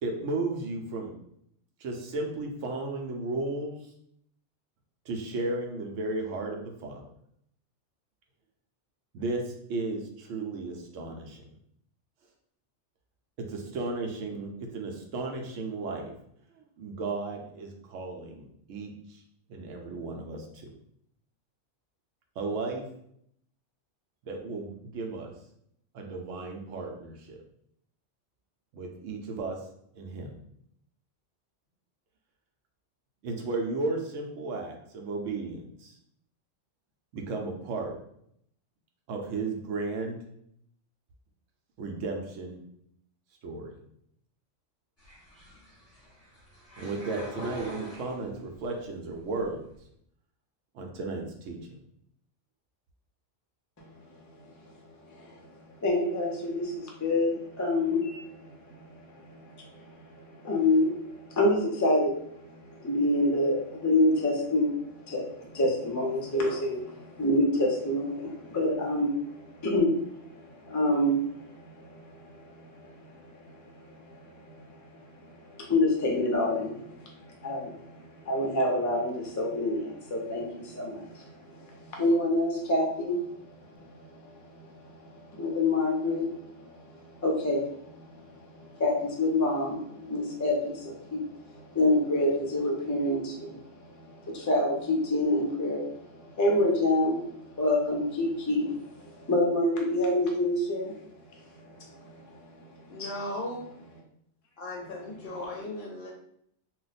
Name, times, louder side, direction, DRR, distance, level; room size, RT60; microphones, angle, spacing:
voice 1, 0.0-1.1 1.8-3.8 5.1-7.0 9.1-11.4 13.4-16.1 16.8-19.2 19.5-20.7 22.4-22.9 24.2-25.3 25.9-27.4 28.7-29.6 29.9-30.3 33.2-35.9 37.1-38.0 39.1-40.2 41.8-42.6 43.4-43.7 46.8-49.6 50.7-51.6, right 3 dB, 80° right, 1.0 m, -34 dB
sound 1, 45.0-48.7 49.1-49.8, equal, 15° left, 1.1 m, -44 dB
voice 2, 53.8-103.1 105.2-105.4, left 1 dB, 30° left, 0.3 m, -28 dB
voice 3, 102.9-103.6 104.6-106.1, left 1 dB, 65° left, 0.7 m, -36 dB
2.4 x 2.1 x 3.9 m
omnidirectional pair, 1.3 m